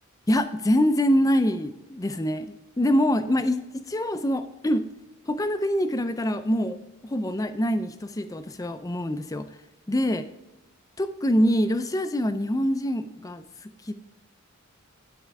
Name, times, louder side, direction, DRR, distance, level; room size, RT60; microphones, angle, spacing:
voice 1, 0.3-3.6 3.9-4.9 5.3-9.5 9.9-10.2 11.0-13.9, equal, 15° left, 10 dB, 0.4 m, -25 dB
11.5 x 4.3 x 3.6 m, 1.0 s
head